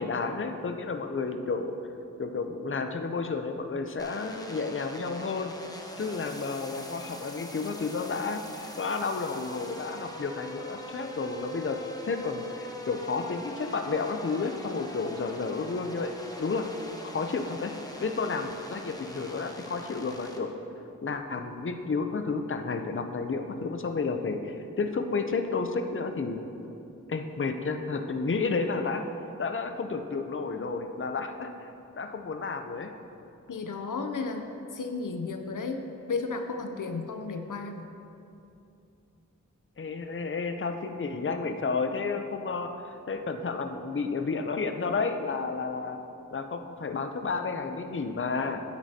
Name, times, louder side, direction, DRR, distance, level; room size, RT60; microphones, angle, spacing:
voice 1, 0.0-1.8 2.2-5.5 6.0-11.8 12.1-16.1 16.4-16.7 17.0-17.7 18.0-20.5 21.0-26.4 27.1-29.0 29.4-31.7 32.0-32.9 39.8-46.0 46.3-48.6, left 4 dB, 40° left, 6 dB, 0.5 m, -31 dB
sound 1, 4.0-20.4, left 1 dB, 10° left, 0.9 m, -43 dB
voice 2, 33.5-34.5 34.7-35.8 36.1-37.9, left 4 dB, 85° left, 5 dB, 0.6 m, -33 dB
9.2 x 8.3 x 2.8 m, 2.8 s
wide cardioid pair, 40°, 31 cm